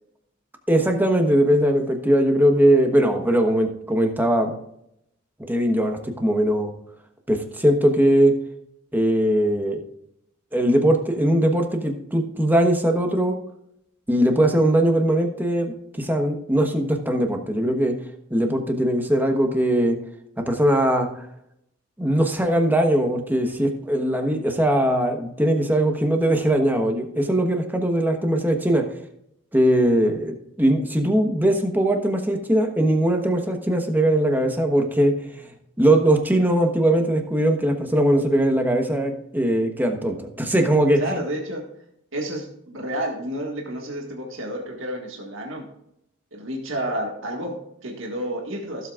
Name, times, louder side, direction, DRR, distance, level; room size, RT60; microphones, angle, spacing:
voice 1, 0.7-4.5 5.5-6.7 7.3-8.3 8.9-9.8 10.5-13.4 14.1-18.0 18.3-20.0 20.4-21.3 22.0-28.8 29.5-35.5 35.8-41.2, right 1 dB, 10° right, 4 dB, 1.2 m, -20 dB
voice 2, 40.9-41.7 42.1-45.7 46.3-48.9, right 1 dB, 70° right, 0 dB, 1.8 m, -30 dB
16.0 x 7.7 x 2.5 m, 0.77 s
head